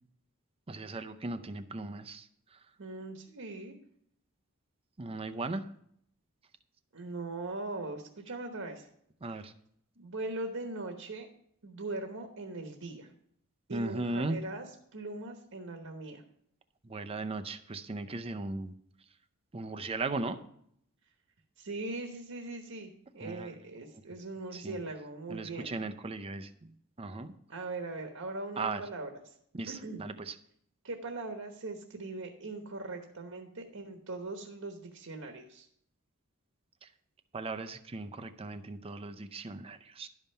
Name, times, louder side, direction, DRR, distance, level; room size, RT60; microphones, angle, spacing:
voice 1, 0.7-2.3 5.0-5.7 9.2-9.5 13.7-14.4 16.8-18.7 19.5-20.4 23.2-23.5 24.5-24.8 25.3-26.5 27.0-27.3 28.6-28.8 29.5-30.3 37.3-40.1, right 3 dB, 25° right, 9 dB, 0.5 m, -37 dB
voice 2, 2.8-3.8 6.9-8.9 9.2-9.4 10.0-11.3 11.6-13.1 13.7-16.2 21.6-25.7 27.5-29.3 29.7-30.0 30.8-35.7, right 2 dB, 65° right, 4 dB, 1.2 m, -40 dB
11.5 x 5.4 x 5.5 m, 0.69 s
head